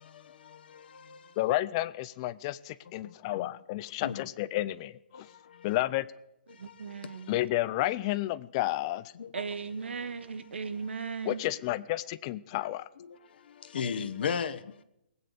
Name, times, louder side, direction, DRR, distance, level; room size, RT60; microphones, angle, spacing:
voice 1, 0.0-1.4 3.0-3.5 3.8-4.2 5.1-5.8 6.5-7.4 9.1-9.3 10.8-11.0 12.6-14.8, left 7 dB, 60° left, 1.1 m, -38 dB
voice 2, 1.4-5.0 5.6-6.1 7.3-9.1 11.3-12.9, left 16 dB, 30° left, 0.5 m, -31 dB
voice 3, 6.5-7.4 9.3-11.4, right 5 dB, 85° right, 1.5 m, -37 dB
19.5 x 8.9 x 6.7 m
hypercardioid pair, 155°, 6 cm